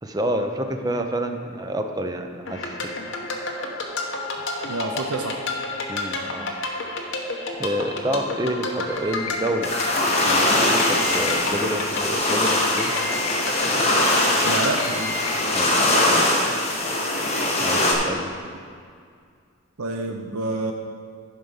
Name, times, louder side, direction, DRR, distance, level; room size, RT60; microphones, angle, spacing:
voice 1, 0.0-2.7 5.9-6.5 7.6-9.7 10.2-12.9 15.5-15.8 16.1-16.2 17.6-18.3, right 1 dB, 15° right, 5 dB, 0.5 m, -28 dB
sound 1, 2.5-14.9, left 2 dB, 60° left, 1.0 m, -30 dB
voice 2, 4.7-5.4 14.4-15.1 19.8-20.7, right 2 dB, 90° right, 3 dB, 0.7 m, -28 dB
sound 2, 8.9-9.5 10.8-11.5 12.8-13.5 14.8-15.4, left 3 dB, 85° left, 1.7 m, -33 dB
sound 3, 9.6-17.9, left 1 dB, 30° left, 1.3 m, -22 dB
11.0 x 5.2 x 5.5 m, 2.1 s
head